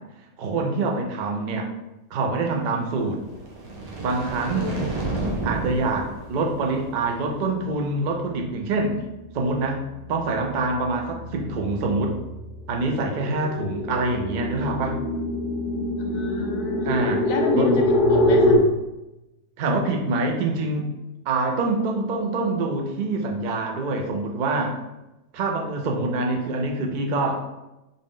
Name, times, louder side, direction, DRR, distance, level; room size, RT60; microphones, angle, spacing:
voice 1, 0.4-1.7 2.1-3.2 4.0-4.7 5.4-9.0 9.3-9.8 10.1-12.1 12.7-15.0 16.8-17.2 17.5-17.7 19.6-20.9 21.3-24.7 25.3-27.5, right 3 dB, 60° right, 2 dB, 0.4 m, -25 dB
sound 1, 3.1-7.4, right 2 dB, 85° right, 1.3 m, -32 dB
voice 2, 4.5-5.0 16.0-18.5, left 3 dB, 75° left, 3 dB, 1.0 m, -30 dB
sound 2, 9.0-9.3 9.7-18.6, left 1 dB, 55° left, 0.6 m, -24 dB
3.7 x 2.4 x 3.6 m, 0.96 s
omnidirectional pair, 1.5 m